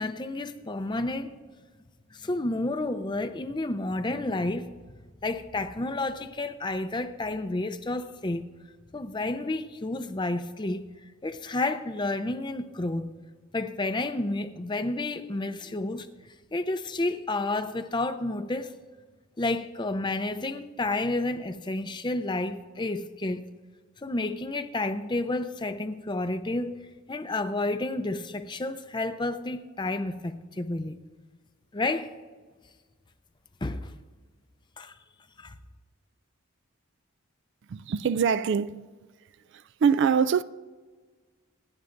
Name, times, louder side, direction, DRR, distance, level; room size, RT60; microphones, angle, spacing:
voice 1, 0.0-1.3 2.1-4.7 5.2-8.5 8.9-10.9 11.2-13.1 13.5-16.1 16.5-18.7 19.4-23.4 24.0-26.7 27.1-31.0 31.7-32.1 33.6-33.9 34.8-35.0 35.4-35.5, left 2 dB, 20° left, 0.5 m, -30 dB
voice 2, 37.7-38.9 39.5-40.4, right 6 dB, 55° right, 0.3 m, -24 dB
26.0 x 10.5 x 2.6 m
head